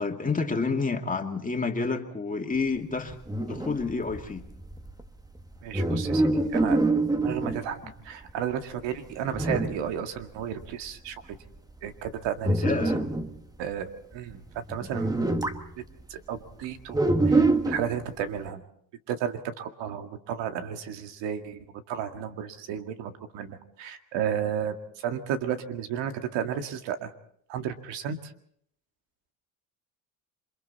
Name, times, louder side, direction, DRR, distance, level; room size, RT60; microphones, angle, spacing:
voice 1, 0.0-4.4 7.8-7.9 12.6-13.0, left 4 dB, 20° left, 3 dB, 2.4 m, -29 dB
sound 1, 3.1-7.7 8.3-8.4 8.8-8.9 9.3-9.9 10.2-10.3 10.5-10.9 11.3-11.6 12.1-13.4 14.3-14.4 14.7-15.7 16.9-18.0, right 2 dB, 10° right, 1.3 m, -25 dB
voice 2, 5.6-6.2 6.5-6.8 7.2-11.2 11.8-13.1 13.6-15.2 16.1-17.0 17.3-18.6 19.1-27.1 27.5-28.3, right 8 dB, 75° right, 7 dB, 2.1 m, -33 dB
28.0 x 23.5 x 4.2 m, 0.67 s
supercardioid pair, 95°, 44 cm